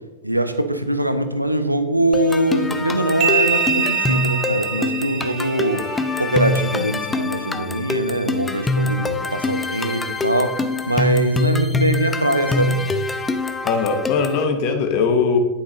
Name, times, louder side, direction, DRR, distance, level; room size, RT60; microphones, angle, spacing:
voice 1, 0.2-10.6 10.9-12.8, right 1 dB, 85° right, 9 dB, 0.7 m, -22 dB
sound 1, 2.1-14.4, left 3 dB, 15° left, 0.6 m, -24 dB
sound 2, 3.2-6.7, right 8 dB, 40° right, 1.1 m, -24 dB
voice 2, 13.6-15.4, left 5 dB, 45° left, 7 dB, 1.0 m, -20 dB
9.7 x 8.6 x 3.1 m, 1.2 s
figure-of-eight pair, 90°, 0 cm